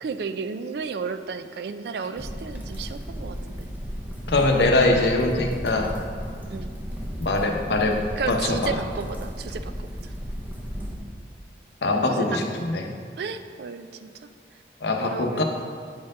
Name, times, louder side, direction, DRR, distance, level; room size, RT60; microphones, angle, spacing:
voice 1, 0.0-3.7 6.5-6.7 8.2-9.7 12.2-12.5 13.2-14.1 15.0-15.4, right 5 dB, 65° right, 10 dB, 0.3 m, -33 dB
sound 1, 2.2-11.0, equal, 10° right, 0.6 m, -34 dB
voice 2, 4.3-5.9 7.2-8.8 11.8-12.8 14.8-15.4, left 2 dB, 75° left, 2 dB, 0.7 m, -22 dB
8.8 x 4.4 x 3.7 m, 2.1 s
head